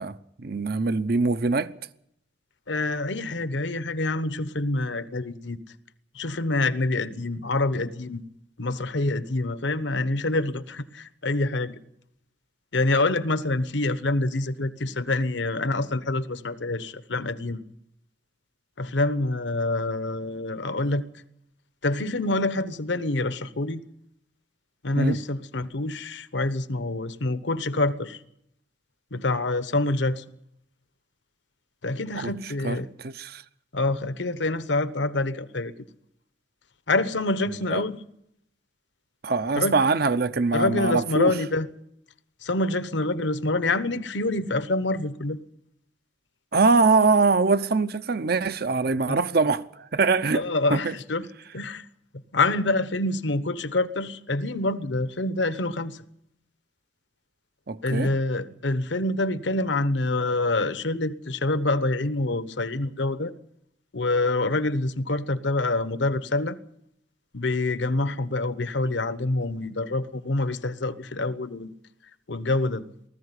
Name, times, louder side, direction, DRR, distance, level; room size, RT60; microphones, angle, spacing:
voice 1, 0.0-1.7 25.0-25.2 32.1-32.3 32.6-33.4 37.7-37.8 39.2-41.3 46.5-50.4 50.7-50.9 57.7-58.1, right 4 dB, 55° right, 0.7 m, -23 dB
voice 2, 2.7-5.6 6.1-8.2 8.6-11.8 12.7-17.6 18.8-21.0 21.8-23.8 24.8-28.2 29.1-30.2 31.8-32.9 33.7-35.7 36.9-38.0 39.6-39.8 40.5-41.7 42.4-45.4 48.9-49.2 50.3-51.3 51.5-51.8 52.3-56.0 57.8-63.3 63.9-66.6 67.3-71.7 72.3-72.8, left 2 dB, 70° left, 1.1 m, -26 dB
19.5 x 14.5 x 9.8 m
head